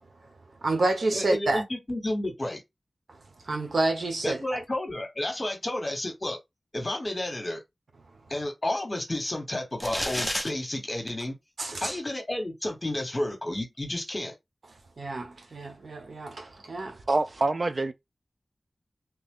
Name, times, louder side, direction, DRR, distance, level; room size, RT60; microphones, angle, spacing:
voice 1, 0.6-1.6 3.4-4.6 11.6-12.0 15.0-17.0, right 2 dB, 80° right, 1.0 m, -29 dB
voice 2, 1.1-2.6 4.2-6.4 6.7-7.6 8.3-11.4 11.8-14.3, left 1 dB, 35° left, 1.3 m, -31 dB
sound 1, 9.8-10.5, equal, ahead, 1.0 m, -29 dB
voice 3, 17.1-17.9, right 2 dB, 55° right, 0.5 m, -25 dB
3.2 x 2.4 x 3.7 m
wide cardioid pair, 75°, 0 cm